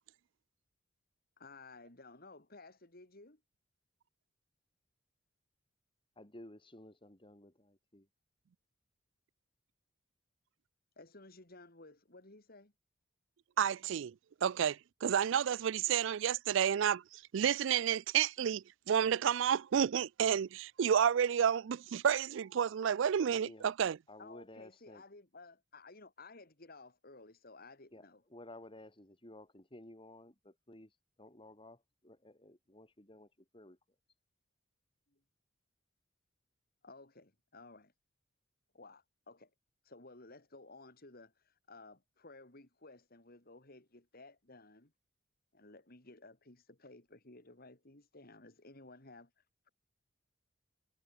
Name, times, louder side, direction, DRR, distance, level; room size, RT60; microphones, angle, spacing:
voice 1, 1.4-3.4 11.0-12.7 24.2-28.2 35.1-35.2 36.8-37.9 38.7-39.5 39.8-44.9 45.5-49.3, left 3 dB, 50° left, 3.2 m, -56 dB
voice 2, 6.2-8.1 23.4-23.7 24.1-25.0 27.9-33.8, left 1 dB, 25° left, 4.2 m, -55 dB
voice 3, 13.6-14.1 14.4-24.0, right 8 dB, 70° right, 0.4 m, -30 dB
head